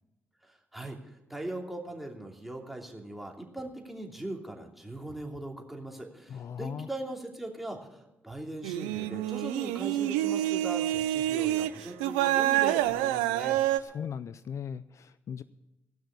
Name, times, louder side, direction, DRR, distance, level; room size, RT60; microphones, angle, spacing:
voice 1, 0.4-1.0 1.3-13.6, right 1 dB, 5° right, 1 dB, 2.8 m, -40 dB
voice 2, 6.3-6.9 13.8-15.4, left 7 dB, 60° left, 15 dB, 0.4 m, -38 dB
sound 1, 8.6-11.7 12.0-13.8, right 14 dB, 90° right, 0.4 m, -27 dB
16.0 x 6.3 x 9.6 m, 0.98 s
hypercardioid pair, 45°, 6 cm